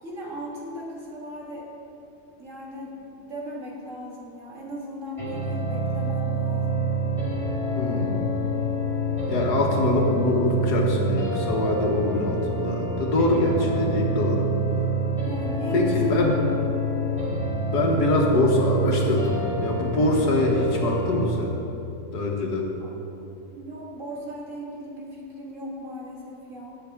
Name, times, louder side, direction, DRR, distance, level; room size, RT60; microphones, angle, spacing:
voice 1, 0.0-1.7 2.4-6.8 15.2-16.6 22.8-22.9 23.5-26.8, equal, 55° right, -4 dB, 2.1 m, -37 dB
sound 1, 5.2-21.2, right 2 dB, 20° left, 1.8 m, -27 dB
voice 2, 7.7-8.2 9.3-14.5 15.7-16.3 17.7-21.6 22.1-22.7, left 2 dB, 90° left, 0 dB, 1.9 m, -23 dB
17.0 x 6.2 x 3.6 m, 2.9 s
omnidirectional pair, 1.7 m